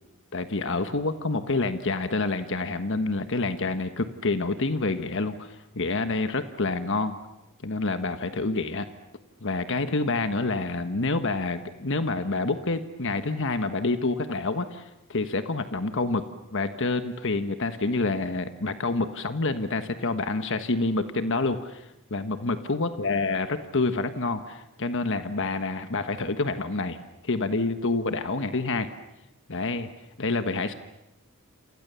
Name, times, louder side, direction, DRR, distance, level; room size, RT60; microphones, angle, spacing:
voice 1, 0.3-7.2 7.6-8.9 9.4-16.2 16.5-27.0 27.2-28.9 29.5-29.9 30.2-30.7, left 3 dB, 60° left, 9 dB, 1.3 m, -28 dB
30.0 x 27.5 x 7.0 m, 0.93 s
head